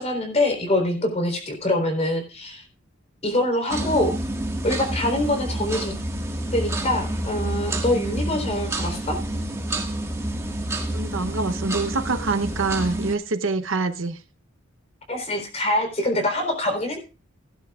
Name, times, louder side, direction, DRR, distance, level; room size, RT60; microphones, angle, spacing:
voice 1, 0.0-2.6 3.2-4.1 4.6-5.9 6.5-9.2 15.1-17.0, left 1 dB, 30° left, 3.8 m, -24 dB
sound 1, 3.7-13.1, right 1 dB, 15° right, 1.6 m, -28 dB
voice 2, 10.9-14.2, right 3 dB, 65° right, 0.9 m, -25 dB
17.0 x 11.0 x 2.4 m
head